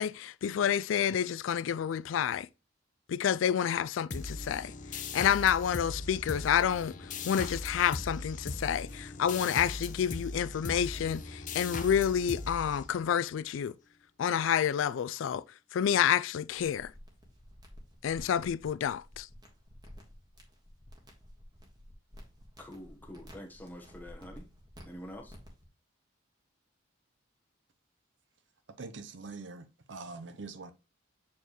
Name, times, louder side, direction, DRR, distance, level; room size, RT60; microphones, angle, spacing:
voice 1, 0.0-2.5 3.1-4.7 5.1-6.9 7.2-13.7 14.2-15.4 15.7-16.9 18.0-19.3, left 8 dB, 75° left, 0.3 m, -29 dB
sound 1, 4.1-13.3, left 3 dB, 40° left, 0.8 m, -39 dB
sound 2, 16.6-25.6, equal, 20° right, 1.5 m, -52 dB
voice 2, 22.6-24.5 24.8-25.4, equal, 10° left, 1.1 m, -46 dB
voice 3, 28.8-30.7, right 3 dB, 65° right, 0.7 m, -44 dB
7.1 x 4.4 x 3.0 m
head